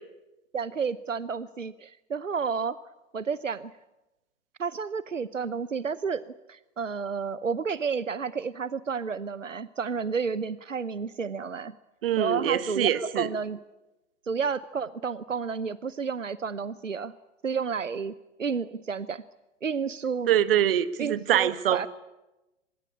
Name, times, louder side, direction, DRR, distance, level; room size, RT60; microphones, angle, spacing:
voice 1, 0.5-2.8 3.1-3.7 4.6-6.2 6.5-11.7 12.2-13.6 14.3-17.1 17.4-18.1 18.4-19.2 19.6-20.3 21.0-21.9, right 5 dB, 80° right, 18 dB, 0.8 m, -31 dB
voice 2, 12.0-13.3 20.3-21.9, right 11 dB, 45° right, 16 dB, 1.3 m, -24 dB
25.0 x 21.5 x 8.5 m, 0.99 s
figure-of-eight pair, 110°, 38 cm